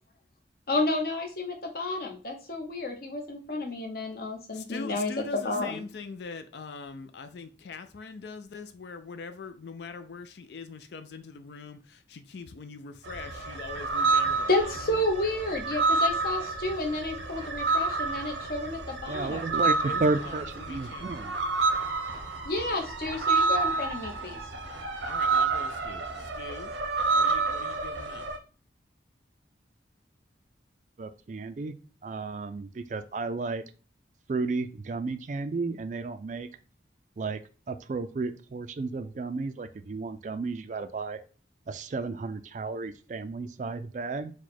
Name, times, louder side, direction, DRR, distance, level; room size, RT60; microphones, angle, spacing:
voice 1, 0.7-5.1 5.4-5.8 14.5-19.4 22.4-24.4, left 2 dB, 55° left, 0.9 m, -31 dB
voice 2, 4.5-15.0 19.8-21.1 25.0-26.7 27.1-28.3, left 4 dB, 70° left, 0.4 m, -42 dB
sound 1, 13.0-28.4, right 3 dB, 90° right, 0.8 m, -29 dB
voice 3, 19.1-21.3 31.0-31.7 32.0-33.6 34.3-36.5 37.2-41.2 41.7-44.3, right 3 dB, 40° right, 0.3 m, -33 dB
4.8 x 2.2 x 4.1 m
head